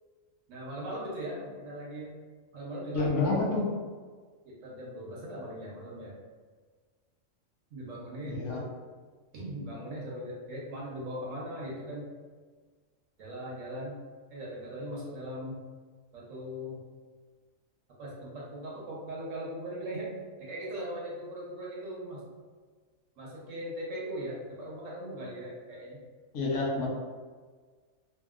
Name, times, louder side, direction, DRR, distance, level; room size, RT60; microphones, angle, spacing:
voice 1, 0.5-2.1 2.5-3.5 4.4-6.1 7.7-8.7 9.3-12.1 13.2-14.0 14.3-15.6 16.1-16.8 18.0-20.1 20.4-22.2 23.2-26.0, right 1 dB, 75° right, -4 dB, 1.1 m, -39 dB
voice 2, 2.9-3.7 8.2-8.6 26.3-26.9, left 2 dB, 70° left, -3 dB, 1.0 m, -28 dB
2.8 x 2.7 x 2.3 m, 1.5 s
omnidirectional pair, 1.4 m